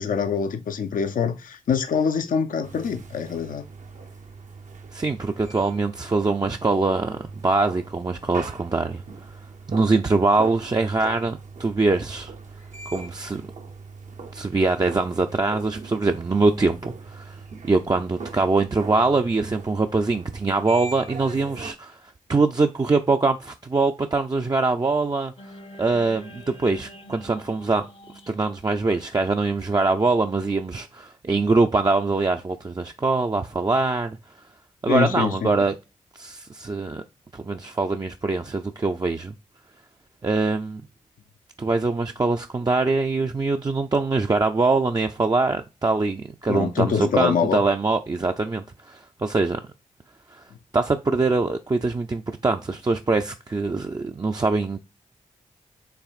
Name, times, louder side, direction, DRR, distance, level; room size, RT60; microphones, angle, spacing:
voice 1, 0.0-3.6 34.9-35.5 46.5-47.6, left 6 dB, 70° left, 0.6 m, -24 dB
sound 1, 2.6-21.7, right 4 dB, 60° right, 0.8 m, -40 dB
voice 2, 4.9-9.0 9.7-12.3 12.9-13.4 14.3-17.4 17.6-25.3 25.8-27.9 28.3-34.2 34.8-35.7 36.1-37.0 37.3-39.3 40.2-40.8 41.6-49.6 50.3-50.4 50.7-54.8, right 3 dB, 30° right, 0.5 m, -23 dB
sound 2, 25.4-29.7, equal, 45° left, 0.8 m, -46 dB
5.8 x 3.4 x 2.4 m
supercardioid pair, 40°, 14 cm